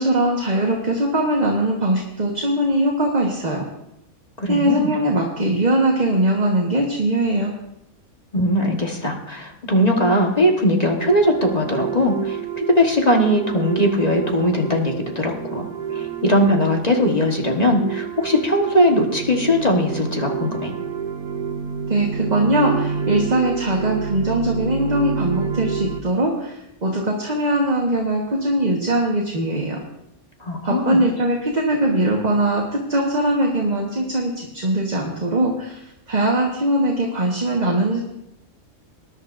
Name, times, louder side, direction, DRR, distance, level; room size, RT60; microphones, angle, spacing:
voice 1, 0.0-3.6 4.5-7.5 21.9-29.8 30.6-38.0, right 1 dB, 30° right, -1 dB, 1.4 m, -21 dB
voice 2, 4.4-4.9 8.3-20.7 30.4-31.0, left 1 dB, 30° left, 1 dB, 1.4 m, -20 dB
sound 1, 11.0-26.0, right 6 dB, 80° right, 1.3 m, -28 dB
20.0 x 11.0 x 2.6 m, 0.83 s
omnidirectional pair, 1.5 m